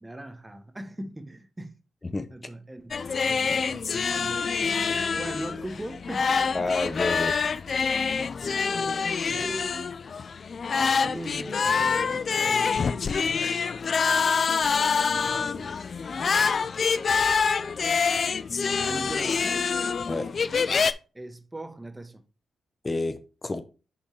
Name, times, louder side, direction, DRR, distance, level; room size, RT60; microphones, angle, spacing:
voice 1, 0.0-1.7 2.3-4.4 5.2-6.4 8.7-9.0 9.3-9.9 10.7-12.9 13.3-13.5 15.0-15.8 18.8-19.6 21.1-22.2, right 1 dB, 20° right, 1.0 m, -40 dB
sound 1, 2.9-20.9, left 5 dB, 55° left, 0.4 m, -26 dB
voice 2, 6.5-7.4 20.1-20.3 22.8-23.6, left 3 dB, 30° left, 0.7 m, -29 dB
5.7 x 4.3 x 4.6 m
supercardioid pair, 50°, 0 cm